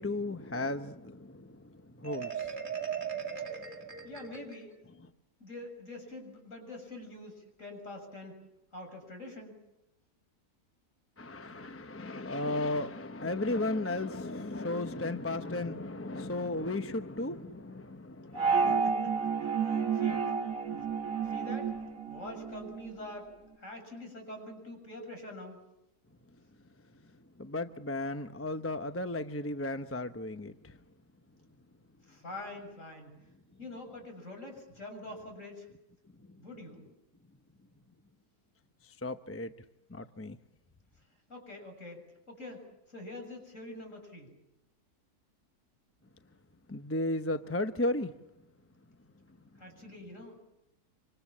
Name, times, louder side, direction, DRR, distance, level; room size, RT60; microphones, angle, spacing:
voice 1, 0.0-1.5 2.0-2.5 11.2-18.8 27.4-30.5 39.0-39.5 39.9-40.4 46.7-48.1, left 2 dB, 15° left, 9 dB, 0.5 m, -34 dB
Marimba xylophone, 2.0-4.8, right 8 dB, 30° right, 2.4 m, -38 dB
voice 2, 4.0-5.0 5.4-8.4 8.7-9.6 18.5-20.3 20.7-20.9 21.2-21.7 22.1-25.6 32.0-33.3 33.6-35.7 36.4-36.8 41.3-44.3 49.6-50.4, left 2 dB, 50° left, 3 dB, 7.4 m, -45 dB
sound 1, 18.3-23.0, right 5 dB, 60° right, 3.1 m, -30 dB
26.5 x 26.5 x 7.3 m, 0.88 s
omnidirectional pair, 1.6 m